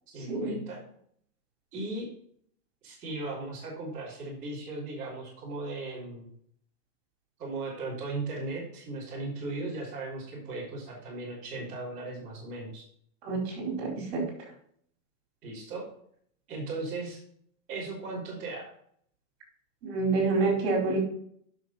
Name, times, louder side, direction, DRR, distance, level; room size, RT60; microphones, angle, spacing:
voice 1, 0.1-0.8 1.7-2.1 2.8-6.3 7.4-12.9 15.4-15.8 16.5-17.2 17.7-18.7, right 2 dB, 15° right, -10 dB, 3.3 m, -37 dB
voice 2, 13.2-14.2 19.8-21.0, right 3 dB, 40° right, 0 dB, 4.6 m, -27 dB
10.5 x 6.5 x 4.3 m, 0.63 s
supercardioid pair, 175°, 45 cm